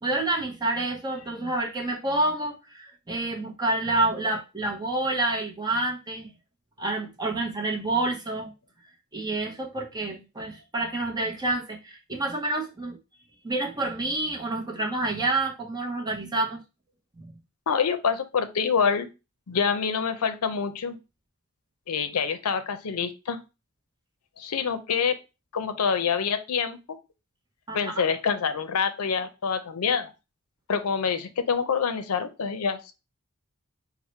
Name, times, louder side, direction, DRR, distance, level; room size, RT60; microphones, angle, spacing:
voice 1, 0.0-6.3 6.8-8.5 9.1-13.0 13.4-16.6 17.2-17.3 27.7-28.0, right 2 dB, 20° right, 0.8 m, -28 dB
voice 2, 17.7-19.1 19.5-21.0 21.9-23.4 24.4-25.2 25.5-27.0 27.7-30.1 30.7-32.9, left 6 dB, 85° left, 0.5 m, -26 dB
4.3 x 2.1 x 4.3 m
head